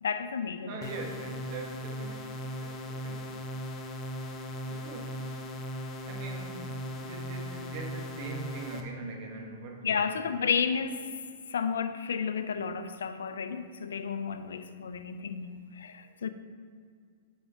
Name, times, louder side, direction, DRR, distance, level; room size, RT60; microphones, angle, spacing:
voice 1, 0.0-0.7 9.8-11.1 11.5-16.3, left 6 dB, 85° left, 0.5 m, -32 dB
voice 2, 0.7-3.4 4.7-5.3 6.1-10.8, right 3 dB, 45° right, 1.3 m, -42 dB
sound 1, 0.8-8.8, equal, 25° left, 0.8 m, -38 dB
6.9 x 5.0 x 5.0 m
hypercardioid pair, 135°, 0 cm